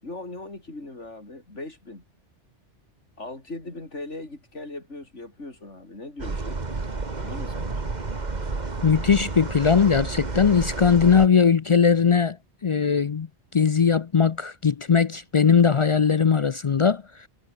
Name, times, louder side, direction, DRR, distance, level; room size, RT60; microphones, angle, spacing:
voice 1, 0.0-2.0 3.2-6.6 7.2-7.9, left 2 dB, 85° left, 5.2 m, -39 dB
sound 1, 6.2-11.3, right 3 dB, 40° right, 1.9 m, -31 dB
voice 2, 8.8-12.4 12.6-13.3 13.5-17.3, left 6 dB, 55° left, 0.3 m, -20 dB
omnidirectional pair, 1.2 m